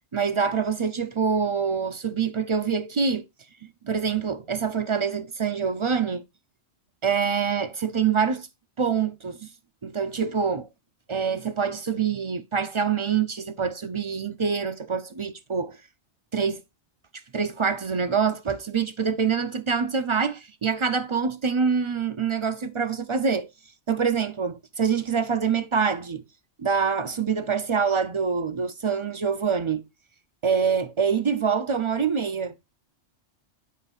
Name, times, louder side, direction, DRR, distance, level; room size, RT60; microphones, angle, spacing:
voice 1, 0.1-3.2 3.6-6.2 7.0-8.5 8.8-9.5 9.8-10.7 11.1-15.8 16.3-16.6 17.3-23.5 23.9-26.2 26.6-29.8 30.4-32.5, right 6 dB, 45° right, 0.4 m, -25 dB
9.8 x 5.5 x 2.4 m
omnidirectional pair, 1.1 m